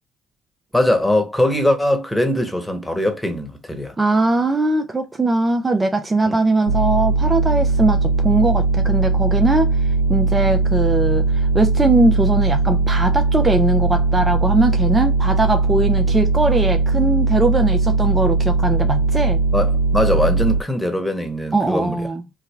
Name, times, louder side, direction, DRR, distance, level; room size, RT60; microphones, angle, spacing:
voice 1, 0.7-3.9 6.3-6.4 19.5-22.1, left 1 dB, 10° left, 1.2 m, -21 dB
voice 2, 4.0-9.8 10.1-19.4 21.5-22.2, right 2 dB, 20° right, 0.6 m, -20 dB
sound 1, 6.7-20.6, right 3 dB, 85° right, 0.6 m, -19 dB
3.5 x 2.2 x 3.2 m
hypercardioid pair, 55°, 0 cm